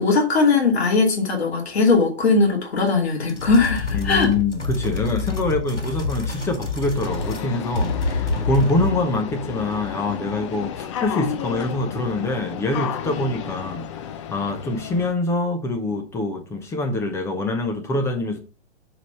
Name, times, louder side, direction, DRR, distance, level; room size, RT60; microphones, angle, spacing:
voice 1, 0.0-4.3, left 4 dB, 65° left, 2.7 m, -19 dB
sound 1, 3.3-7.5 7.7-9.1, left 3 dB, 85° left, 3.2 m, -27 dB
voice 2, 3.9-18.4, left 2 dB, 10° left, 0.9 m, -25 dB
sound 2, 7.0-15.1, left 9 dB, 25° left, 0.5 m, -32 dB
5.2 x 4.9 x 5.6 m
hypercardioid pair, 135°, 34 cm